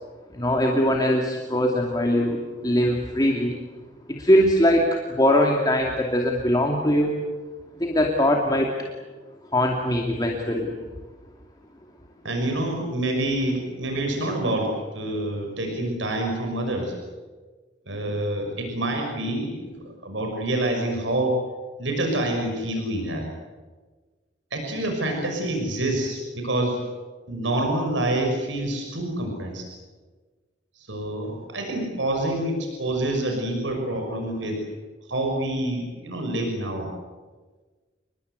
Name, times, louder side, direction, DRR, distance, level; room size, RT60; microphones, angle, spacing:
voice 1, 0.3-3.6 4.1-7.2 7.8-8.7 9.5-10.7, equal, 20° left, 1 dB, 2.6 m, -21 dB
voice 2, 12.2-16.9 17.9-21.4 21.8-23.3 24.5-26.8 27.3-29.7 30.7-34.6 35.1-36.9, right 1 dB, 85° right, 3 dB, 6.1 m, -27 dB
29.5 x 22.0 x 8.3 m, 1.3 s
head